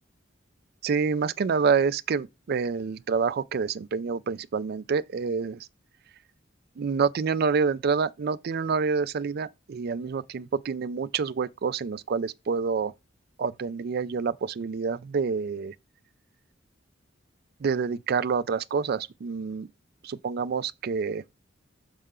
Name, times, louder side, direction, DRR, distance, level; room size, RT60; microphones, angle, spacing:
voice 1, 0.8-5.7 6.8-12.9 13.4-15.7 17.6-19.7 20.0-21.2, right 5 dB, 55° right, 0.4 m, -27 dB
6.6 x 5.6 x 3.7 m
head